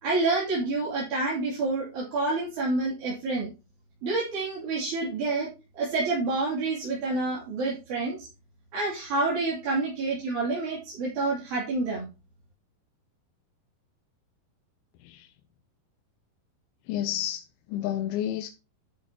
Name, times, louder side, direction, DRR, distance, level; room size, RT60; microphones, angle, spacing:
voice 1, 0.0-3.5 4.0-5.5 5.7-8.3 8.7-12.1, right 3 dB, 50° right, 4.1 m, -28 dB
voice 2, 16.9-18.5, left 11 dB, 80° left, 2.5 m, -31 dB
11.5 x 7.1 x 2.9 m
omnidirectional pair, 4.6 m